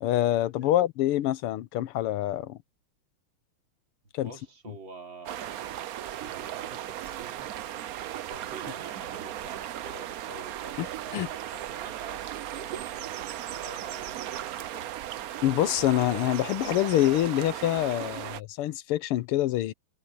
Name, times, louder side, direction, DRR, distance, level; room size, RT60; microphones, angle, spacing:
voice 1, 0.0-2.6 4.1-4.3 10.8-10.9 11.1-11.3 15.4-19.7, left 14 dB, 85° left, 1.7 m, -26 dB
voice 2, 4.2-7.7 8.3-12.2 12.6-14.9, right 4 dB, 60° right, 3.7 m, -47 dB
sound 1, 5.3-18.4, right 12 dB, 90° right, 0.7 m, -37 dB
omnidirectional pair, 2.4 m